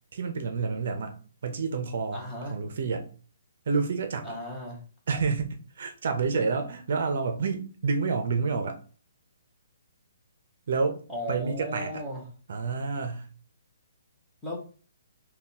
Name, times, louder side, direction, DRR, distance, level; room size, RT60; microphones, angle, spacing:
voice 1, 0.1-3.1 3.7-4.3 5.1-8.8 10.7-11.0 11.3-12.0 12.5-13.3, right 4 dB, 55° right, 0.5 m, -29 dB
voice 2, 2.1-2.6 4.2-4.8 11.1-12.2 14.4-14.6, equal, 5° left, 0.9 m, -35 dB
3.5 x 2.3 x 4.1 m
hypercardioid pair, 165°, 0 cm